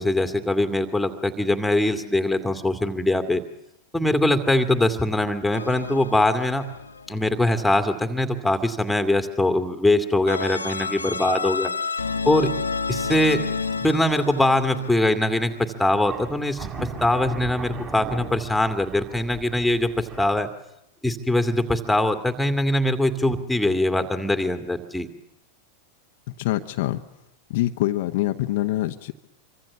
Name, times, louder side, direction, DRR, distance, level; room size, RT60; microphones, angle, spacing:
voice 1, 0.0-3.4 3.9-6.6 7.1-11.7 12.2-12.5 12.9-13.4 13.8-20.5 21.0-25.1, left 1 dB, 5° left, 8 dB, 2.3 m, -22 dB
sound 1, 5.5-7.6 10.3-15.7, left 4 dB, 75° left, 1.4 m, -30 dB
sound 2, 15.5-15.6 16.0-20.4, right 5 dB, 25° right, 5.3 m, -37 dB
voice 2, 26.4-27.0 27.5-29.1, left 15 dB, 50° left, 7 dB, 1.2 m, -25 dB
26.5 x 24.5 x 7.3 m, 0.87 s
figure-of-eight pair, 90°, 0 cm